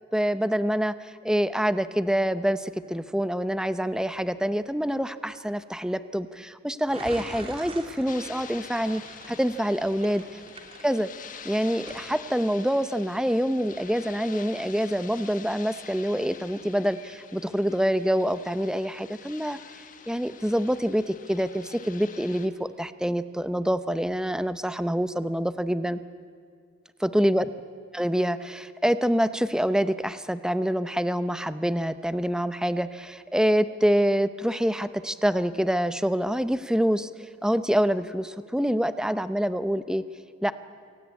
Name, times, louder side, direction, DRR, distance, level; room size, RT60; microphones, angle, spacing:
voice 1, 0.1-10.4 10.8-11.1 11.4-19.6 20.1-26.0 27.0-27.5 27.9-40.0 40.4-40.5, equal, 5° right, 12 dB, 0.7 m, -26 dB
sound 1, 6.9-11.4 11.8-12.1, right 2 dB, 30° right, 3.1 m, -43 dB
sound 2, 8.0-22.5, left 7 dB, 45° left, 1.5 m, -46 dB
27.5 x 18.0 x 9.6 m, 2.2 s
head